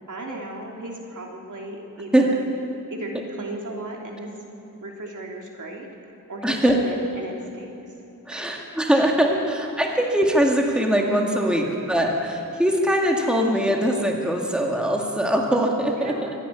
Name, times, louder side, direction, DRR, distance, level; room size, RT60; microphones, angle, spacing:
voice 1, 0.1-2.5 2.9-4.3 4.8-7.9 8.3-8.5 8.9-9.0 11.8-11.9 15.9-16.3, right 2 dB, 65° right, 0 dB, 3.3 m, -36 dB
voice 2, 6.4-6.8 8.3-9.3 9.8-16.3, equal, 5° right, 0 dB, 2.1 m, -21 dB
25.0 x 11.0 x 9.8 m, 2.8 s
wide cardioid pair, 120°, 33 cm